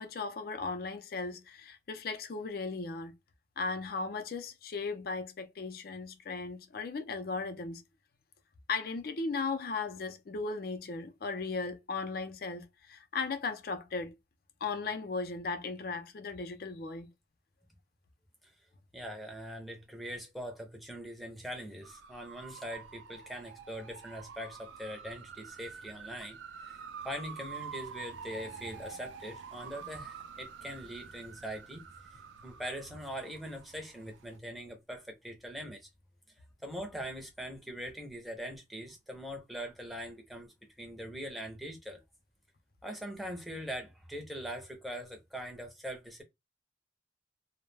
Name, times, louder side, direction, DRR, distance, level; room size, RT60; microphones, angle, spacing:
voice 1, 0.0-3.1 3.6-7.8 8.7-14.1 14.6-17.1, left 4 dB, 55° left, 0.4 m, -37 dB
voice 2, 18.9-31.8 32.1-35.8 36.6-42.0 42.8-46.2, equal, ahead, 0.5 m, -42 dB
sound 1, 21.8-34.4, right 6 dB, 80° right, 0.4 m, -47 dB
2.2 x 2.1 x 3.2 m
head